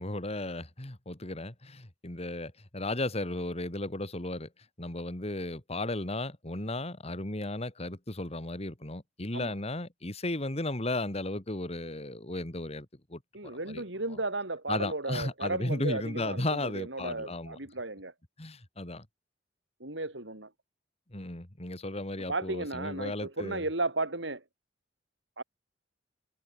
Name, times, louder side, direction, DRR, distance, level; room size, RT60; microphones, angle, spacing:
voice 1, 0.0-4.5 4.8-13.8 14.1-14.2 14.7-17.6 18.4-19.1 21.1-23.7, left 2 dB, 35° left, 2.5 m, -35 dB
voice 2, 13.3-18.1 19.8-20.5 22.3-24.4 25.4-25.5, right 2 dB, 70° right, 6.0 m, -34 dB
head